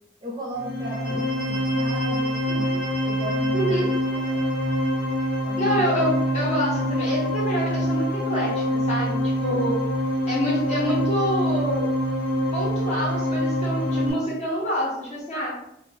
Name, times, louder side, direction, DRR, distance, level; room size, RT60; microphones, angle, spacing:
voice 1, 0.2-3.9 4.3-4.5 5.4-6.0, right 1 dB, 20° right, -4 dB, 0.5 m, -36 dB
sound 1, 0.5-14.1, equal, 65° left, 1.0 m, -25 dB
voice 2, 3.5-3.9 5.6-9.8 10.3-11.9 12.5-15.5, equal, 35° left, -5 dB, 0.9 m, -27 dB
2.4 x 2.1 x 3.2 m, 0.78 s
head